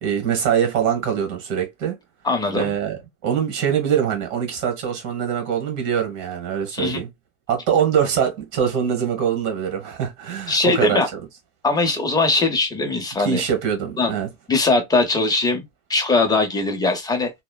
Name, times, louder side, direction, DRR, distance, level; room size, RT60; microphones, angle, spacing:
voice 1, 0.0-2.0 2.5-7.1 7.5-11.0 13.2-14.3, right 8 dB, 55° right, 1.4 m, -23 dB
voice 2, 2.2-2.7 6.7-7.0 10.5-11.1 11.6-13.4 14.0-14.1 14.5-17.3, left 3 dB, 10° left, 0.6 m, -20 dB
3.0 x 2.1 x 2.3 m
supercardioid pair, 135°, 34 cm